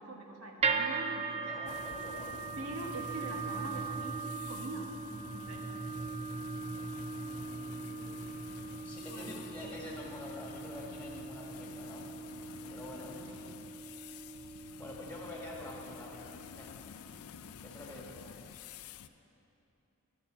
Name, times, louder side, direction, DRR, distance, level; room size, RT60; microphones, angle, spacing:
voice 1, 0.0-1.5 2.6-5.7 7.7-8.4 9.1-9.8 13.3-13.5, right 1 dB, 75° right, 1 dB, 1.4 m, -44 dB
sound 1, 0.6-16.8, right 4 dB, 30° right, 0.5 m, -40 dB
voice 2, 1.5-2.5 7.1-8.3 8.8-12.1 12.7-13.2 14.8-16.9 17.6-18.3, left 1 dB, 5° left, -3 dB, 1.6 m, -47 dB
sound 2, 1.7-19.1, left 7 dB, 80° left, 0.4 m, -50 dB
12.0 x 7.1 x 7.0 m, 2.9 s
head